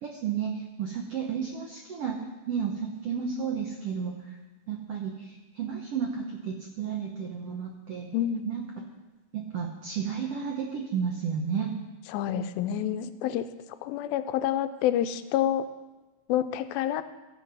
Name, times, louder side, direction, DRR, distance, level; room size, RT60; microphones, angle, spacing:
voice 1, 0.0-2.2 2.5-4.3 4.7-8.1 8.4-8.6 9.3-11.7, right 7 dB, 80° right, 1 dB, 1.3 m, -32 dB
voice 2, 8.1-8.5 12.1-13.5 13.8-15.6 16.3-17.0, left 11 dB, 90° left, 11 dB, 2.4 m, -28 dB
15.0 x 7.7 x 5.6 m, 1.1 s
omnidirectional pair, 4.1 m